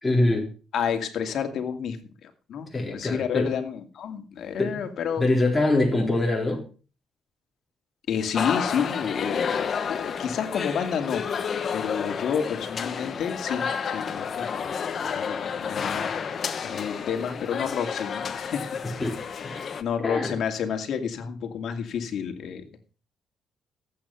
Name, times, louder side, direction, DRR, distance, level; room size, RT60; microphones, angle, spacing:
voice 1, 0.0-0.5 2.7-3.6 4.6-4.7 5.2-6.7 18.8-19.2 19.4-19.6 20.0-20.4, left 2 dB, 15° left, -1 dB, 3.9 m, -24 dB
voice 2, 0.7-5.3 8.1-11.3 11.7-14.7 15.0-18.7 19.8-22.6, left 7 dB, 70° left, 6 dB, 2.4 m, -30 dB
sound 1, 8.3-19.8, left 6 dB, 50° left, 1.4 m, -31 dB
14.0 x 8.8 x 5.7 m, 0.37 s
cardioid pair, 90°, 0 cm